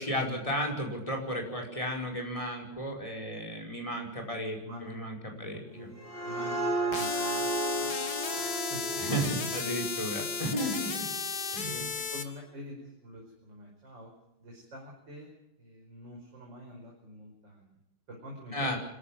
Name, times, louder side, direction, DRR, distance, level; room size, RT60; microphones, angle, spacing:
voice 1, 0.0-5.9 9.0-11.1 11.5-11.8 18.5-18.8, equal, 15° left, 2 dB, 5.2 m, -34 dB
voice 2, 4.2-7.9 8.3-9.1 10.6-10.8 11.6-14.1 14.4-17.8 18.1-18.8, equal, 65° right, -1 dB, 5.8 m, -46 dB
sound 1, 5.7-11.2, right 2 dB, 25° right, 3.7 m, -34 dB
sound 2, 6.9-12.2, left 5 dB, 55° left, 2.3 m, -34 dB
25.5 x 15.0 x 8.8 m, 0.83 s
omnidirectional pair, 2.1 m